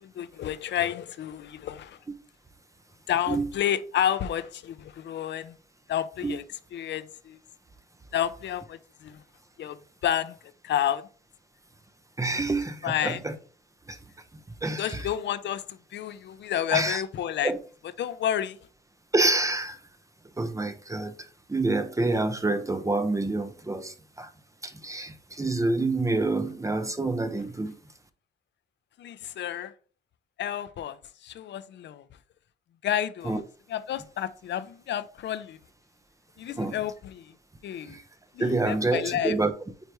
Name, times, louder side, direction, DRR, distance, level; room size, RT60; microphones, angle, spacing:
voice 1, 0.0-2.0 3.1-5.5 5.9-6.4 6.7-7.4 8.1-9.2 9.6-9.8 10.0-10.4 10.6-11.1 12.8-13.2 14.8-17.5 18.0-18.6 29.0-29.7 30.4-32.1 32.8-33.4 33.7-35.6 36.4-37.3 37.6-38.0 38.3-39.3, left 10 dB, 65° left, 0.6 m, -30 dB
voice 2, 12.2-13.4 13.9-14.0 14.3-15.1 16.7-17.0 17.4-17.6 19.1-19.8 20.4-24.3 24.6-27.8 33.2-33.4 36.6-36.8 37.8-38.0 38.4-39.5, right 2 dB, 15° right, 0.7 m, -27 dB
9.0 x 3.3 x 3.1 m
cardioid pair, 90°, 20 cm